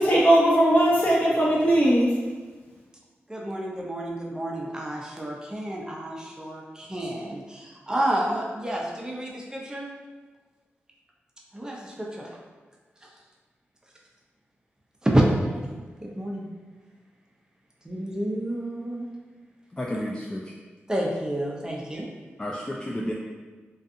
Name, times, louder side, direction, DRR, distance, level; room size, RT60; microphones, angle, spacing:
voice 1, 0.0-2.1, right 1 dB, 35° left, -7 dB, 1.0 m, -19 dB
voice 2, 3.3-9.9 11.5-12.4 15.0-16.5 17.8-19.1 20.9-22.1, right 1 dB, 15° right, -2 dB, 0.6 m, -29 dB
voice 3, 19.7-20.5 22.4-23.1, left 1 dB, 20° left, -3 dB, 0.3 m, -31 dB
2.4 x 2.4 x 2.6 m, 1.4 s
cardioid pair, 45°, 5 cm